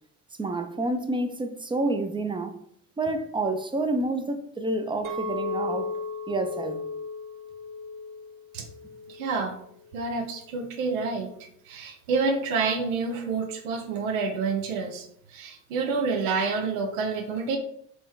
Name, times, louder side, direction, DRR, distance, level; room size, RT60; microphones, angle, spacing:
voice 1, 0.4-2.6 3.0-5.9 6.3-6.8, right 2 dB, 10° right, 0.6 m, -28 dB
Chink clink, 5.0-9.4 9.9-10.2, left 3 dB, 50° right, 1.0 m, -35 dB
voice 2, 9.1-9.6 9.9-11.3 11.7-17.6, right 4 dB, 75° right, 0.8 m, -28 dB
4.1 x 3.0 x 3.5 m
figure-of-eight pair, 50°, 42 cm